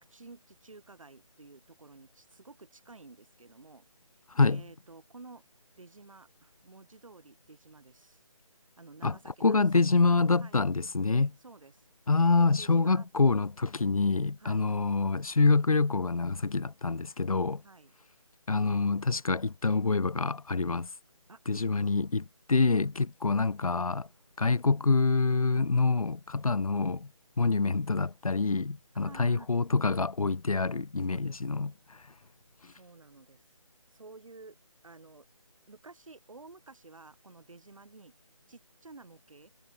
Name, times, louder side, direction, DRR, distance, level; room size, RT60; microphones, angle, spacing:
voice 1, 0.1-3.9 4.4-5.4 5.8-8.2 8.8-10.7 11.4-11.9 12.4-13.1 14.4-14.7 17.6-17.9 21.3-21.4 28.9-29.5 31.1-31.4 32.7-33.4 33.9-34.6 34.8-35.3 35.7-38.1 38.5-39.5, right 3 dB, 70° right, 7.5 m, -52 dB
voice 2, 4.3-4.6 9.0-11.3 12.1-17.6 18.5-20.9 21.5-24.1 24.4-27.1 27.4-32.0 32.6-32.7, left 4 dB, 90° left, 1.0 m, -26 dB
figure-of-eight pair, 170°, 18 cm